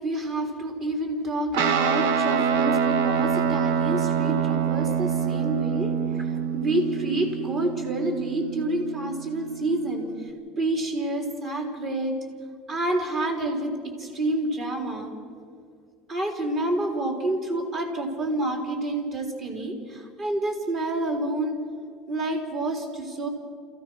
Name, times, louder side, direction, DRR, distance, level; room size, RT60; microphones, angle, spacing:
voice 1, 0.0-10.3 10.6-12.1 12.7-13.7 14.0-15.1 16.1-21.5 22.1-23.3, right 1 dB, 35° right, 3 dB, 3.7 m, -28 dB
Guitar, 1.5-10.3, right 7 dB, 85° right, 1.2 m, -26 dB
28.0 x 15.5 x 6.3 m, 2.1 s
cardioid pair, 145°, 0 cm